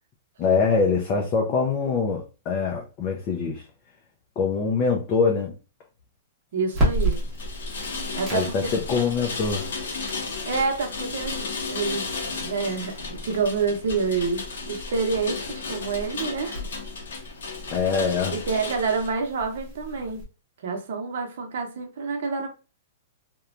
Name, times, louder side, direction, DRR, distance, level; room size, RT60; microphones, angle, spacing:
voice 1, 0.4-3.7 4.4-5.5 8.3-9.7 17.7-18.3, left 5 dB, 25° left, 0.4 m, -24 dB
voice 2, 6.5-7.2 8.1-8.7 10.5-16.7 18.3-20.2 20.6-22.5, right 4 dB, 55° right, 0.8 m, -28 dB
sound 1, 6.7-20.2, right 1 dB, 10° right, 0.9 m, -34 dB
Rain, 6.8-19.1, left 4 dB, 85° left, 0.8 m, -34 dB
3.0 x 2.2 x 2.4 m
hypercardioid pair, 175°, 0 cm